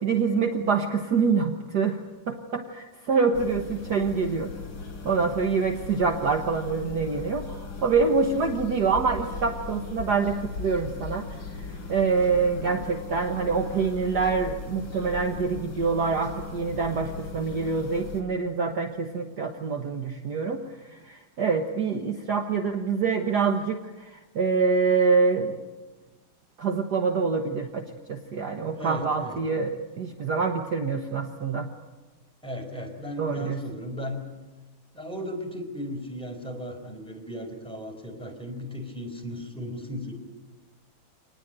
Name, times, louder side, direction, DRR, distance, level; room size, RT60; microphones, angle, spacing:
voice 1, 0.0-2.0 2.3-4.5 5.1-11.3 11.9-20.6 21.1-23.8 24.4-25.6 26.6-31.7 33.2-33.6, right 5 dB, 55° right, 5 dB, 1.7 m, -25 dB
sound 1, 3.3-18.2, left 4 dB, 50° left, 3.8 m, -38 dB
voice 2, 28.7-29.4 32.4-34.2 34.9-40.1, left 1 dB, ahead, 3 dB, 4.2 m, -36 dB
25.5 x 19.5 x 9.0 m, 1.2 s
omnidirectional pair, 2.2 m